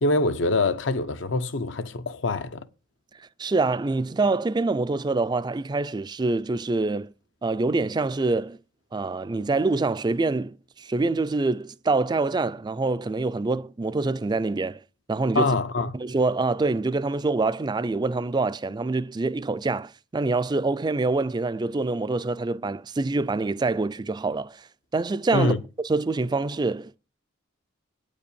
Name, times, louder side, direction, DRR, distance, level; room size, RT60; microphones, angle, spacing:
voice 1, 0.0-2.7 15.3-15.9 25.3-25.6, left 2 dB, 75° left, 0.8 m, -24 dB
voice 2, 3.4-7.1 7.4-8.6 8.9-14.8 15.1-15.6 15.9-24.7 24.9-27.0, right 3 dB, 20° right, 0.4 m, -25 dB
9.1 x 5.1 x 6.9 m
head